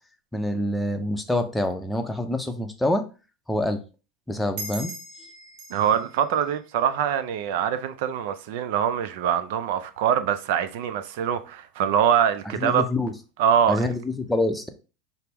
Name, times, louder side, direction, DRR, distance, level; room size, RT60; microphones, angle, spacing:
voice 1, 0.3-3.1 3.5-3.8 4.3-4.9 12.5-13.1 13.7-14.7, left 1 dB, 5° left, 0.6 m, -26 dB
sound 1, 4.6-7.7, right 2 dB, 55° right, 1.1 m, -41 dB
voice 2, 5.7-12.9 13.4-13.9, right 9 dB, 70° right, 0.4 m, -24 dB
5.6 x 2.0 x 3.4 m
supercardioid pair, 110°, 0 cm